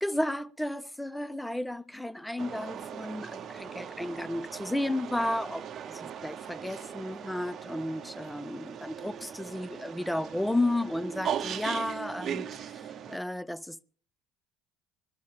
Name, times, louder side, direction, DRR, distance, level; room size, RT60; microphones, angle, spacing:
voice 1, 0.0-12.8 13.1-13.8, left 1 dB, 5° left, 0.6 m, -33 dB
sound 1, 2.4-13.2, right 8 dB, 45° right, 0.8 m, -39 dB
21.0 x 13.0 x 3.5 m
hypercardioid pair, 75°, 0 cm